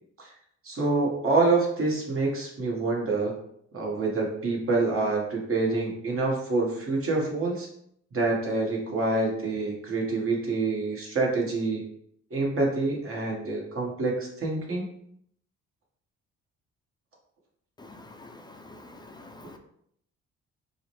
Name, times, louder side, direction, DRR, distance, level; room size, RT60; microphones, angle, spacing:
voice 1, 0.6-3.3 3.7-7.7 8.1-11.8 12.3-14.9, right 3 dB, 45° right, -1 dB, 1.3 m, -27 dB
voice 2, 19.2-19.6, left 2 dB, 15° left, 4 dB, 0.4 m, -46 dB
4.7 x 2.1 x 3.0 m, 0.70 s
cardioid pair, 90°, 30 cm